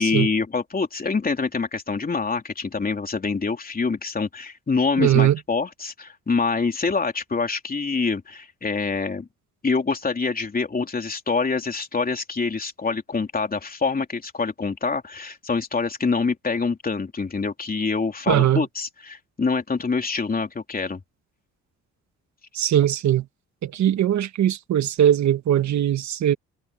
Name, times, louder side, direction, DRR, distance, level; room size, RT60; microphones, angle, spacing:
voice 1, 0.0-9.3 9.6-21.0, left 4 dB, 30° left, 3.4 m, -25 dB
voice 2, 5.0-5.4 18.3-18.6 22.5-23.2 23.6-26.3, right 11 dB, 65° right, 1.5 m, -20 dB
cardioid pair, 90°, 30 cm